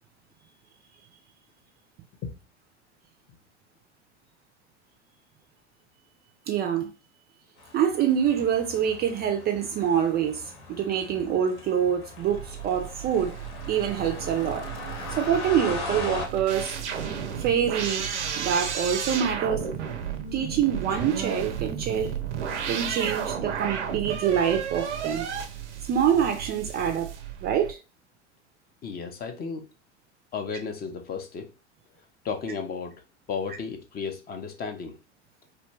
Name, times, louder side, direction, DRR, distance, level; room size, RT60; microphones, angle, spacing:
voice 1, 6.5-6.9 7.7-10.4 10.7-13.3 13.7-14.7 15.2-16.8 17.4-18.1 18.4-19.6 20.3-22.2 22.7-25.3 25.9-27.1 27.4-27.8, right 8 dB, 30° right, 0.4 m, -25 dB
sound 1, 7.6-16.3, left 3 dB, 65° left, 1.0 m, -39 dB
sound 2, 12.2-27.7, right 8 dB, 80° right, 0.5 m, -33 dB
voice 2, 28.8-29.7 30.3-31.5 32.2-33.0 33.3-35.0, left 5 dB, 25° left, 0.5 m, -33 dB
2.6 x 2.1 x 3.1 m
figure-of-eight pair, 80°, 35 cm